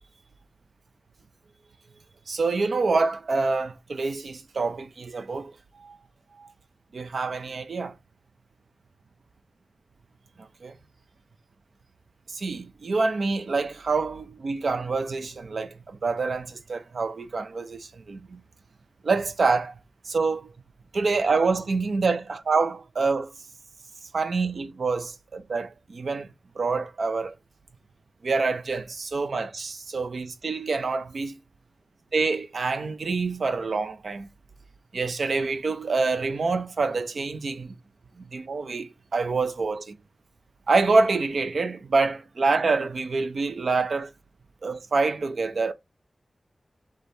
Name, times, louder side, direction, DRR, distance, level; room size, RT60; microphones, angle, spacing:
voice 1, 2.3-5.5 5.8-6.0 6.4-6.5 6.9-7.9 10.4-10.7 12.3-18.4 19.0-19.8 20.1-20.5 20.9-23.3 24.1-26.3 26.6-27.3 28.2-31.3 32.1-34.3 34.9-37.7 38.2-40.0 40.7-44.1 44.6-45.7, right 4 dB, 75° right, 0.5 m, -26 dB
5.2 x 3.4 x 2.7 m
wide cardioid pair, 90°, 0 cm